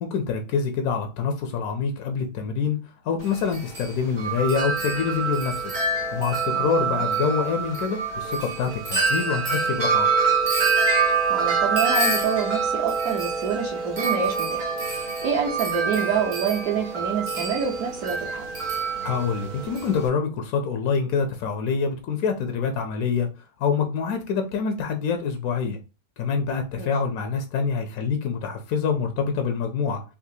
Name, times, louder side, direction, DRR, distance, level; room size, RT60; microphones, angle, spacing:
voice 1, 0.0-2.8 3.0-5.6 6.1-10.1 19.0-23.3 23.6-25.8 26.2-30.0, left 6 dB, 70° left, 0.8 m, -26 dB
Wind chime, 3.2-20.1, right 4 dB, 80° right, 0.4 m, -26 dB
voice 2, 6.5-7.0 11.3-18.4 26.7-26.9, right 7 dB, 60° right, 1.1 m, -27 dB
4.0 x 2.4 x 2.7 m
omnidirectional pair, 2.1 m